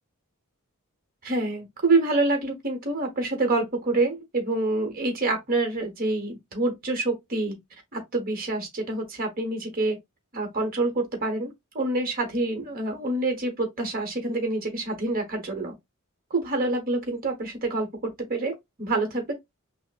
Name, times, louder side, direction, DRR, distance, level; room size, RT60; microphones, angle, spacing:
voice 1, 1.2-7.6 7.9-10.0 10.3-15.7 16.3-19.3, right 2 dB, 40° right, 1.1 m, -27 dB
5.6 x 2.1 x 2.4 m
head